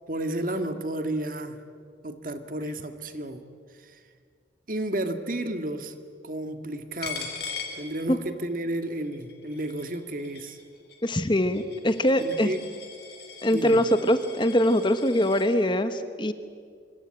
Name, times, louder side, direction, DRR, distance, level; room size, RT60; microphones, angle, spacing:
voice 1, 0.1-1.6 2.0-3.4 3.7-4.0 4.7-5.9 6.2-7.3 7.8-10.6 12.2-12.6 13.5-13.9, right 1 dB, 45° right, 8 dB, 1.8 m, -32 dB
Coin (dropping), 7.0-8.5 8.9-15.5, left 5 dB, 60° left, 4.5 m, -41 dB
voice 2, 11.0-12.5 13.4-16.3, equal, 25° left, 10 dB, 1.1 m, -23 dB
25.5 x 25.0 x 9.0 m, 2.1 s
head